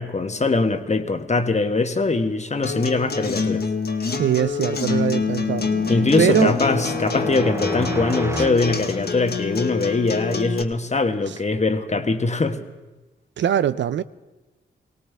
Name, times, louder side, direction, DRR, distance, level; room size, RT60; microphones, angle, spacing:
voice 1, 0.0-3.7 5.9-12.6, left 3 dB, 35° left, 1.2 m, -22 dB
Acoustic guitar, 2.6-10.6, left 5 dB, 55° left, 1.2 m, -26 dB
voice 2, 4.0-5.7 6.2-6.6 13.4-14.0, right 9 dB, 65° right, 0.4 m, -22 dB
sound 1, 4.8-9.7, right 2 dB, 15° right, 0.6 m, -32 dB
19.5 x 17.0 x 3.4 m
supercardioid pair, 45°, 20 cm